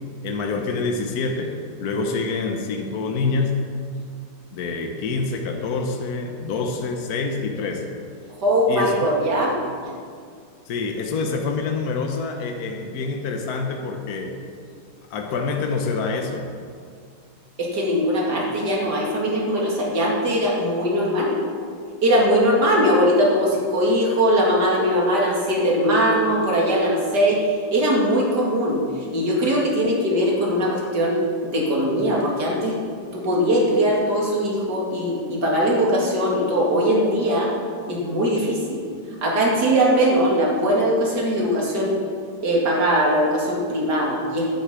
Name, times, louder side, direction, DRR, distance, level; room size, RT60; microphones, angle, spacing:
voice 1, 0.2-3.6 4.5-7.9 8.7-9.0 10.7-14.4 15.1-16.5, left 4 dB, 55° left, 3 dB, 1.2 m, -26 dB
voice 2, 8.4-9.5 17.6-21.4 22.0-32.8 33.1-37.5 37.9-38.8 39.2-42.0 42.4-44.5, equal, 55° right, -3 dB, 2.8 m, -20 dB
10.5 x 6.6 x 8.3 m, 2.2 s
omnidirectional pair, 2.1 m